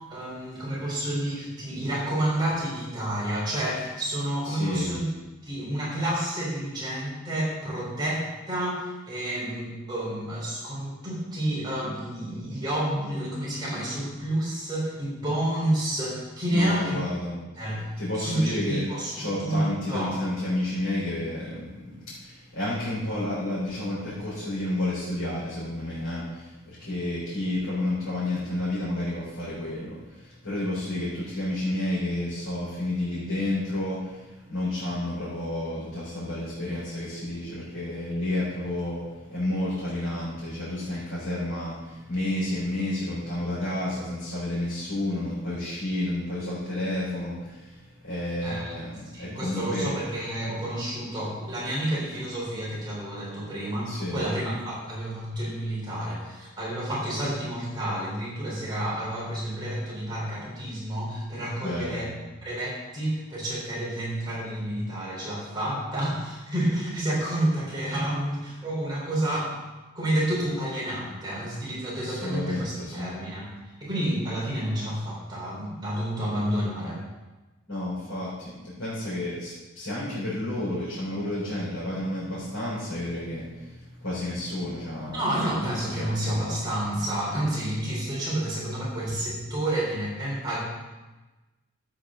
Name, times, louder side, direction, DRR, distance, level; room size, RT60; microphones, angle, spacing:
voice 1, 0.1-5.1 5.4-17.0 17.6-17.9 18.2-20.2 48.4-48.7 49.1-62.1 62.4-69.5 69.9-77.0 85.1-90.6, right 1 dB, 20° right, -6 dB, 3.8 m, -29 dB
voice 2, 4.4-5.0 16.5-17.4 18.0-18.9 19.1-49.9 53.8-54.3 61.6-62.1 72.1-73.1 77.7-85.6 85.9-86.6, left 1 dB, 85° left, -9 dB, 4.1 m, -31 dB
12.5 x 8.8 x 3.8 m, 1.1 s
head